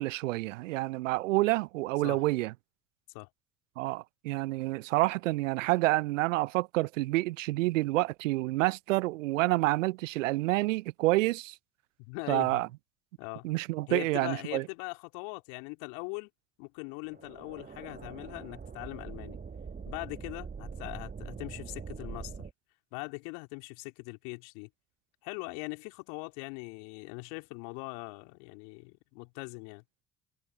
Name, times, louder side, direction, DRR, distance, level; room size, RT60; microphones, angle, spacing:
voice 1, 0.0-2.5 3.8-11.6 12.3-12.7 13.4-14.7, right 19 dB, 75° right, 0.7 m, -28 dB
voice 2, 12.0-12.6 13.2-13.4 13.9-16.3 16.6-19.4 19.9-22.5 22.9-24.7 25.2-29.8, left 38 dB, 70° left, 3.8 m, -41 dB
sound 1, 17.0-22.5, right 5 dB, 25° right, 1.2 m, -43 dB
figure-of-eight pair, 55°, 38 cm